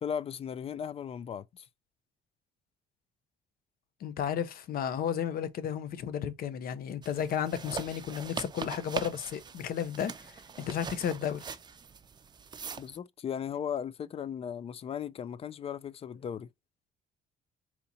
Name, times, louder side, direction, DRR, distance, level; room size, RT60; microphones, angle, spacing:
voice 1, 0.0-1.7 12.8-16.5, left 8 dB, 35° left, 0.4 m, -37 dB
voice 2, 4.0-11.5, left 8 dB, 60° left, 0.8 m, -33 dB
sound 1, 7.0-13.0, right 6 dB, 25° right, 0.5 m, -41 dB
4.2 x 2.9 x 4.1 m
cardioid pair, 110°, 17 cm